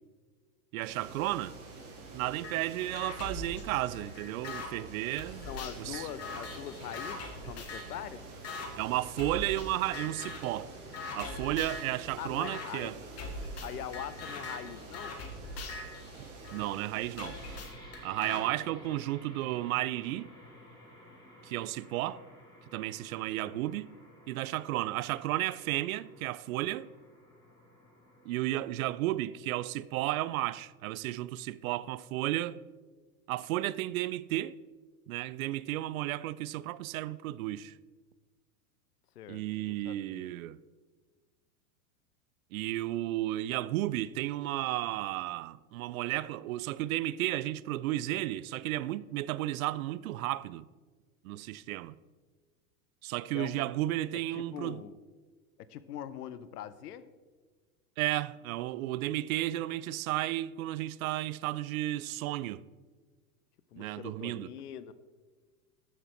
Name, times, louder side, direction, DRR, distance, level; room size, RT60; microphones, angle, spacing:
voice 1, 0.7-1.6 2.1-5.5 5.8-6.1 8.8-10.7 11.1-12.9 16.2-17.4 18.0-20.3 21.4-22.2 22.7-23.9 24.3-26.9 28.3-32.6 33.3-34.6 35.1-37.7 39.3-40.6 42.5-50.7 51.2-51.9 53.0-54.8 58.0-62.6 63.8-64.5, right 15 dB, 65° right, 0.6 m, -33 dB
sound 1, 0.8-17.6, right 3 dB, 30° right, 2.9 m, -48 dB
sound 2, 2.4-2.6 2.9-4.7 5.2-8.0 8.4-8.7 9.2-9.7 9.9-10.5 10.9-11.9 12.4-12.7 13.2-16.7 17.2-18.4, left 2 dB, 35° left, 2.0 m, -41 dB
voice 2, 5.4-8.2 12.2-12.9 13.6-15.2 18.2-19.0 23.4-23.6 28.7-28.8 39.2-40.3 53.3-53.7 54.1-55.0 55.7-57.1 63.7-64.9, left 10 dB, 80° left, 0.8 m, -43 dB
sound 3, 17.3-28.5, left 1 dB, 10° left, 3.8 m, -54 dB
13.5 x 6.7 x 4.4 m
hypercardioid pair, 120°, 45 cm